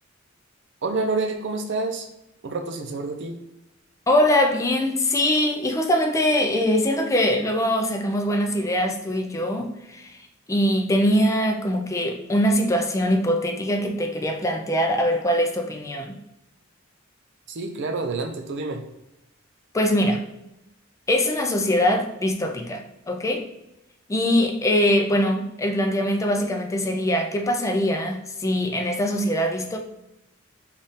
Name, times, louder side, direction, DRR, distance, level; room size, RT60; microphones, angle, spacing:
voice 1, 0.8-2.1 2.4-3.3 17.5-18.8, right 3 dB, 60° right, 5 dB, 0.5 m, -28 dB
voice 2, 4.1-10.2 10.5-16.2 19.7-20.3 21.1-23.5 24.1-29.8, left 1 dB, 15° left, 4 dB, 0.4 m, -22 dB
3.6 x 2.4 x 4.0 m, 0.88 s
head